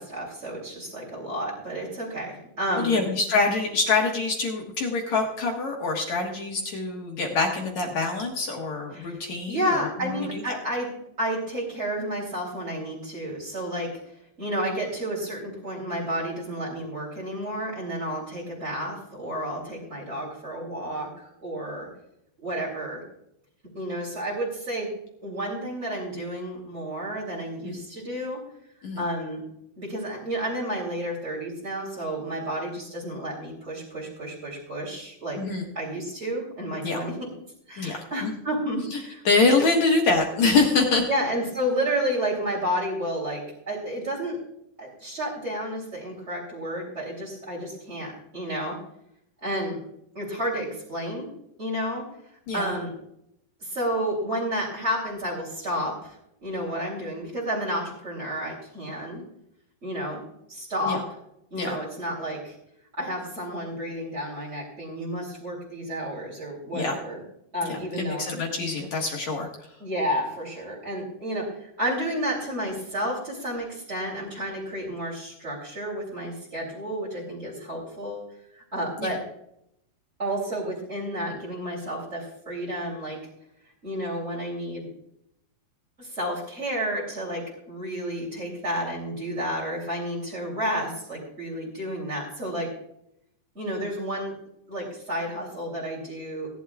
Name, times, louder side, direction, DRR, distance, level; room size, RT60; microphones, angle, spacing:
voice 1, 0.0-3.0 8.9-9.1 9.5-10.9 11.2-13.9 14.4-21.9 22.4-23.0 23.7-24.9 25.2-28.4 29.0-29.4 29.8-35.4 35.7-37.1 37.7-39.2 41.1-44.4 44.8-48.7 49.4-49.8 50.1-51.3 51.6-52.0 52.5-52.9 53.6-59.2 59.8-60.2 60.5-61.0 61.5-62.5 63.0-67.2 67.5-68.2 69.8-78.3 78.5-79.2 80.2-83.2 83.8-84.9 86.0-92.7 93.5-94.3 94.7-96.5, equal, 20° right, -6 dB, 2.9 m, -31 dB
voice 2, 2.8-9.9 10.3-10.6 27.6-27.8 28.8-29.0 35.4-35.7 36.8-37.0 37.8-38.3 38.9-39.0 39.3-41.1 52.5-52.8 60.9-61.0 61.5-61.8 66.7-67.0 67.6-69.5 79.0-79.2, left 3 dB, 55° left, 0 dB, 2.2 m, -25 dB
18.0 x 11.0 x 2.4 m, 0.77 s
omnidirectional pair, 4.8 m